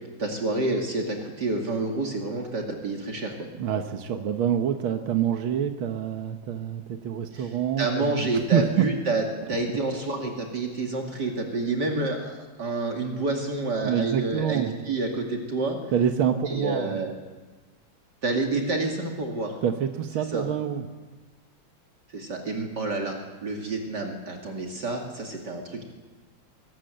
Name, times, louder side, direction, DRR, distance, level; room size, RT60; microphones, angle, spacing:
voice 1, 0.2-3.3 7.3-7.5 7.8-15.8 16.5-17.1 18.2-19.5 20.3-20.4 22.1-23.2 23.4-25.8, right 2 dB, 55° right, 1 dB, 2.9 m, -28 dB
voice 2, 3.5-8.9 13.8-14.7 15.9-17.0 19.6-20.9, right 9 dB, 85° right, 6 dB, 2.0 m, -26 dB
23.5 x 19.0 x 7.8 m, 1.3 s
omnidirectional pair, 2.2 m